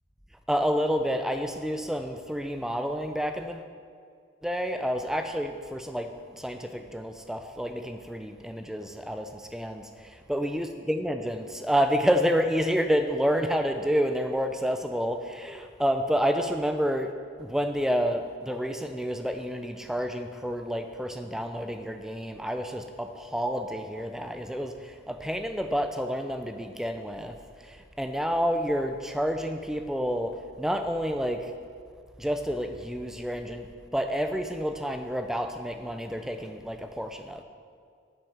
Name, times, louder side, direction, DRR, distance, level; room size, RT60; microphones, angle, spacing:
voice 1, 0.5-3.7 4.4-6.1 6.4-17.1 17.4-27.3 27.6-31.5 32.2-33.7 33.9-37.4, equal, 5° right, 6 dB, 0.3 m, -29 dB
7.1 x 5.5 x 5.6 m, 2.2 s
head